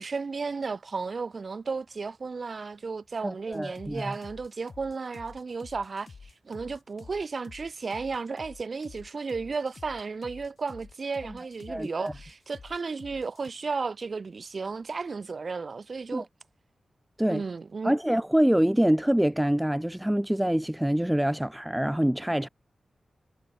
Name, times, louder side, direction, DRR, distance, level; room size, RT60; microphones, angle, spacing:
voice 1, 0.0-16.3 17.3-17.9, right 4 dB, 55° right, 4.8 m, -34 dB
voice 2, 3.2-4.1 11.7-12.1 16.1-16.2 17.2-17.4 17.8-22.5, right 1 dB, 5° right, 0.8 m, -25 dB
sound 1, 3.5-13.5, left 4 dB, 55° left, 5.1 m, -49 dB
wide cardioid pair, 85°, 0 cm